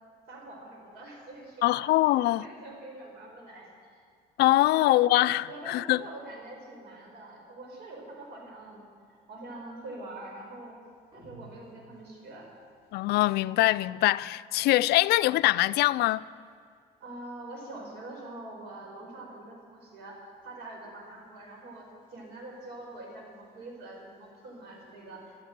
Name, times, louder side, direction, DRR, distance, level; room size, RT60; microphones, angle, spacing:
voice 1, 0.3-1.8 2.1-4.0 4.7-5.1 5.5-10.8 11.1-12.5 17.0-25.4, right 2 dB, 80° right, 5.2 m, -45 dB
voice 2, 1.6-2.4 4.4-6.0 12.9-16.2, left 17 dB, 75° left, 0.4 m, -23 dB
sound 1, 11.1-12.6, right 2 dB, 30° right, 4.4 m, -53 dB
13.5 x 12.0 x 8.1 m
cardioid pair, 110°, 17 cm